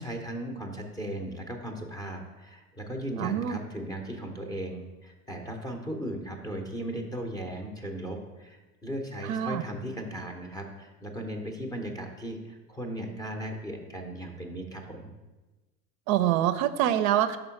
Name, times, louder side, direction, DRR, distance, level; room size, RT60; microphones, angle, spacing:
voice 1, 0.0-15.1, right 1 dB, 10° left, 2 dB, 0.6 m, -37 dB
voice 2, 3.2-3.6 9.3-9.6 16.1-17.4, right 11 dB, 55° right, 11 dB, 0.5 m, -25 dB
5.4 x 3.8 x 5.7 m, 1.2 s
hypercardioid pair, 90°, 50 cm